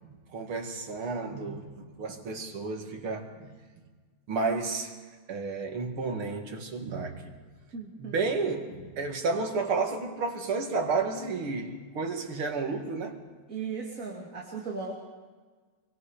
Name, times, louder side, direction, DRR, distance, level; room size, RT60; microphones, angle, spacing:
voice 1, 0.0-3.6 4.3-4.9 5.3-7.3 8.0-13.2, right 4 dB, 90° right, 2.9 m, -32 dB
voice 2, 7.7-8.1 13.5-14.9, right 5 dB, 40° right, 3.0 m, -36 dB
25.0 x 23.5 x 5.1 m
omnidirectional pair, 2.3 m